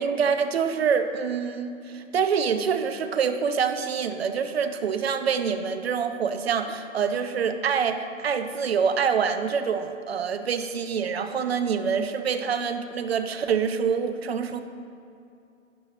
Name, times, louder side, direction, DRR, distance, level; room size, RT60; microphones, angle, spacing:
voice 1, 0.0-14.6, right 6 dB, 50° right, 8 dB, 0.8 m, -26 dB
12.0 x 10.0 x 3.0 m, 2.6 s
hypercardioid pair, 165°, 40 cm